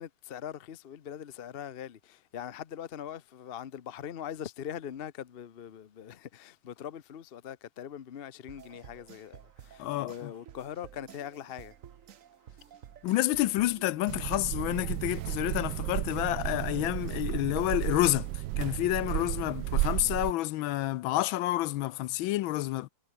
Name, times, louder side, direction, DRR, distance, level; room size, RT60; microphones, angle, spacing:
voice 1, 0.0-11.7, left 9 dB, 60° left, 0.6 m, -42 dB
sound 1, 8.5-19.1, right 9 dB, 50° right, 1.0 m, -52 dB
voice 2, 9.8-10.1 13.0-18.3 18.6-22.9, left 16 dB, 80° left, 1.3 m, -29 dB
sound 2, 14.1-20.3, right 16 dB, 75° right, 1.1 m, -33 dB
omnidirectional pair, 2.3 m